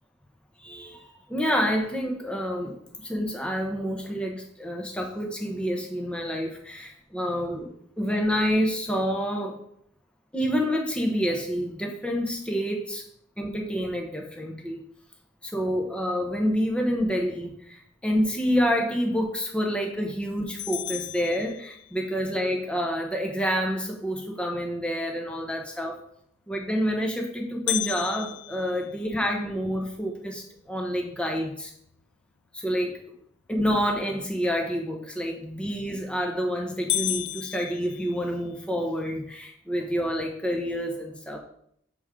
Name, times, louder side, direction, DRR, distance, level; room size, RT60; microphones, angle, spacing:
voice 1, 0.6-2.8 3.0-7.7 8.0-9.5 10.3-13.0 13.4-14.8 15.4-26.0 26.5-31.7 32.5-33.0 33.5-41.4, equal, 5° left, 1 dB, 0.8 m, -28 dB
sound 1, 20.6-22.2 27.7-29.8 30.3-30.4 30.9-31.0 31.7-32.0 35.6-36.0 36.4-36.5 36.9-38.6, left 13 dB, 70° left, 0.4 m, -33 dB
7.1 x 3.6 x 4.8 m, 0.70 s
head